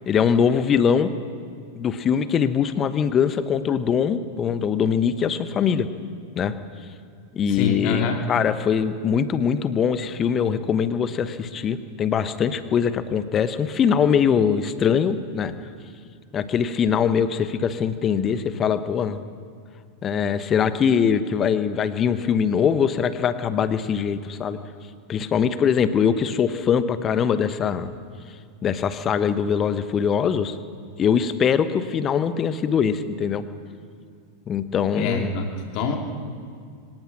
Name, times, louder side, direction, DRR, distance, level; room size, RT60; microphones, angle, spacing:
voice 1, 0.1-1.1 1.7-5.9 6.4-6.6 7.3-15.5 16.3-19.2 20.0-24.6 25.1-27.9 28.6-30.6 31.0-33.4 34.5-35.5, left 7 dB, 25° left, 13 dB, 1.1 m, -22 dB
voice 2, 7.5-8.2 35.0-36.0, left 4 dB, 40° left, 3 dB, 2.7 m, -26 dB
24.5 x 18.0 x 6.0 m, 2.2 s
figure-of-eight pair, 90°, 0 cm